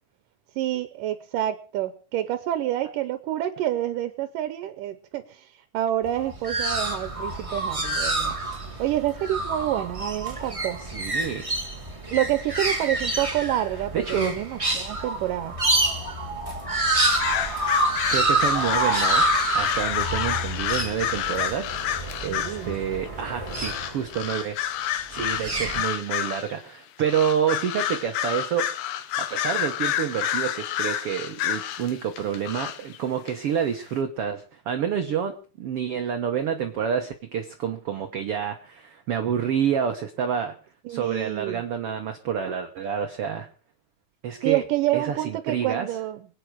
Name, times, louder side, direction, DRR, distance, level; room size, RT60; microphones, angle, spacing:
voice 1, 0.6-8.4 8.8-10.8 12.1-15.6 22.3-22.7 40.9-41.6 44.4-46.3, right 13 dB, 75° right, 12 dB, 2.5 m, -28 dB
sound 1, 6.0-24.2 25.1-25.8, right 2 dB, 15° right, 1.1 m, -27 dB
voice 2, 10.8-11.5 13.9-14.3 18.1-19.2 19.5-28.7 29.2-40.5 40.9-43.5 44.2-44.6 44.9-45.9, right 8 dB, 60° right, 6 dB, 1.6 m, -28 dB
sound 2, 17.1-22.7 23.5-26.5 27.0-33.0 33.3-33.4, left 10 dB, 90° left, 2.9 m, -29 dB
25.0 x 9.2 x 4.8 m, 0.38 s
omnidirectional pair, 3.9 m